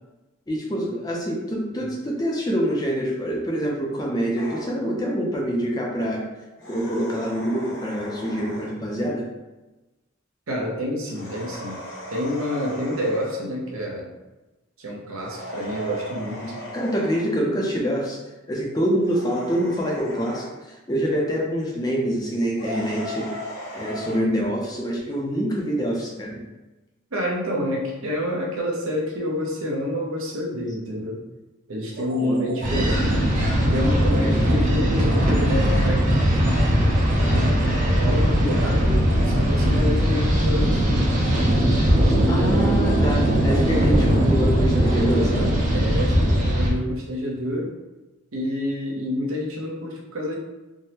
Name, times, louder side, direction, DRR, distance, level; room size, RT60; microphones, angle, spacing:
voice 1, 0.5-6.2 6.7-9.3 16.4-18.2 18.5-23.3 23.7-26.4 32.1-32.4 42.3-45.5, equal, 20° left, -2 dB, 0.4 m, -26 dB
sound 1, 4.3-4.7 6.6-8.8 11.0-13.4 15.2-17.3 19.0-20.5 22.5-24.2, equal, 60° left, 0.8 m, -37 dB
voice 2, 10.5-11.8 12.1-14.1 14.8-16.6 27.1-31.2 31.7-33.2 33.6-36.6 37.2-41.6 42.4-43.0 45.7-47.7 48.3-50.4, left 1 dB, 80° right, -2 dB, 0.7 m, -28 dB
sound 2, 31.9-46.5, right 2 dB, 55° right, 0.9 m, -38 dB
sound 3, 32.6-46.7, equal, 40° right, 0.5 m, -20 dB
3.5 x 2.0 x 2.8 m, 1.1 s
head